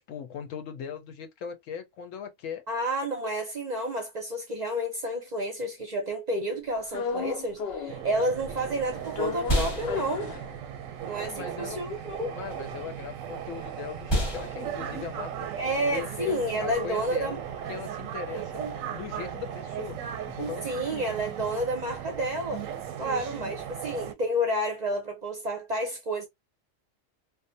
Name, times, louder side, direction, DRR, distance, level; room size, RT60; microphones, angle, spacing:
voice 1, 0.1-2.6 11.3-11.8 12.3-15.3 15.9-18.6 18.9-21.1, left 7 dB, 85° left, 1.0 m, -39 dB
voice 2, 2.7-10.3 11.0-12.4 15.6-17.4 20.6-22.7 23.0-26.3, right 1 dB, 45° right, 0.6 m, -30 dB
sound 1, 6.9-8.1 8.4-11.0 11.4-11.5 11.7-16.2 16.5-20.6, left 5 dB, 60° left, 0.8 m, -38 dB
sound 2, 7.9-24.1, right 9 dB, 90° right, 1.0 m, -37 dB
sound 3, 9.4-17.7, equal, 25° left, 0.8 m, -35 dB
2.6 x 2.1 x 2.6 m
omnidirectional pair, 1.3 m